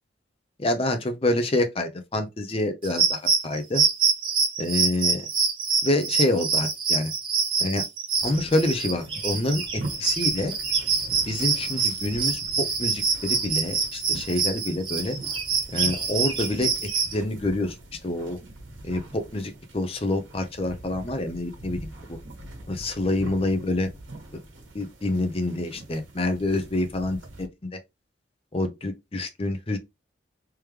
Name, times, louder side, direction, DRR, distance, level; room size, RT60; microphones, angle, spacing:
voice 1, 0.6-3.8 4.6-5.3 5.8-7.1 7.6-7.8 8.2-10.5 11.1-15.2 15.7-16.7 17.1-17.8 18.0-18.4 18.8-22.2 22.7-23.9 24.7-27.8 28.5-29.8, left 1 dB, 30° left, 0.6 m, -27 dB
sound 1, 2.8-17.1, right 5 dB, 25° right, 1.0 m, -25 dB
sound 2, 8.2-27.5, right 2 dB, 80° right, 1.4 m, -43 dB
3.5 x 3.1 x 3.2 m
head